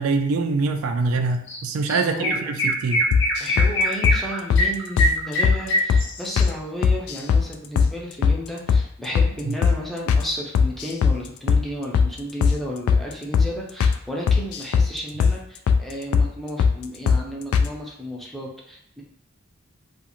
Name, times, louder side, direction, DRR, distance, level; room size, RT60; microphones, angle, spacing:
voice 1, 0.0-3.1 9.4-9.6, right 3 dB, 90° right, 6 dB, 0.4 m, -24 dB
Chirp tweet, 1.5-1.6 1.9-6.5, equal, 65° left, 0.7 m, -23 dB
voice 2, 2.0-2.5 3.4-19.0, equal, ahead, -3 dB, 0.5 m, -33 dB
sound 1, 3.1-3.7 4.0-4.2 4.5-4.7 5.0-5.1 5.4-5.6 5.9-6.1 6.4-6.5 6.8-7.5 7.8-7.9 8.2-8.4 8.7-8.8 9.1-9.3 9.6-9.8 10.1-10.2 10.5-11.2 11.5-11.6 11.9-12.1 12.4-12.6 12.9-13.0 13.3-13.5 13.8-14.0 14.3-14.9 15.2-15.4 15.7-15.8 16.1-16.3 16.6-16.8 17.1-17.2 17.5-17.7, left 6 dB, 85° left, 0.3 m, -18 dB
2.5 x 2.4 x 2.9 m, 0.72 s
head